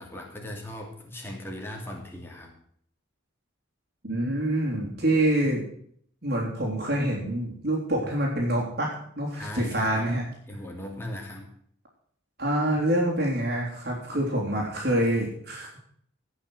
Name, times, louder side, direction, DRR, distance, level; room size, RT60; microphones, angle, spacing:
voice 1, 0.0-2.5 9.3-10.1 10.5-11.5, left 1 dB, 10° left, 0 dB, 2.7 m, -38 dB
voice 2, 4.0-5.6 6.2-10.2 12.4-15.7, right 1 dB, 50° right, -2 dB, 3.4 m, -26 dB
17.0 x 6.4 x 7.8 m, 0.63 s
head